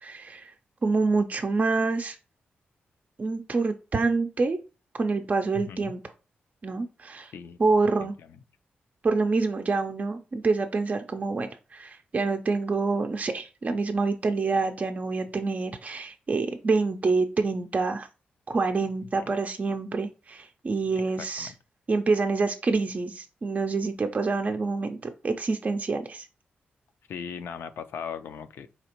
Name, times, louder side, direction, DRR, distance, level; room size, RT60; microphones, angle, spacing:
voice 1, 0.0-0.5 0.8-2.2 3.2-4.6 4.9-6.0 6.6-7.3 7.6-8.1 9.0-18.1 18.5-21.5 21.9-26.3, right 3 dB, 40° right, 0.4 m, -27 dB
voice 2, 5.5-5.9 7.3-7.6 8.0-8.1 21.2-21.6 27.1-28.7, left 7 dB, 75° left, 0.3 m, -38 dB
4.0 x 2.8 x 2.9 m
cardioid pair, 75°, 4 cm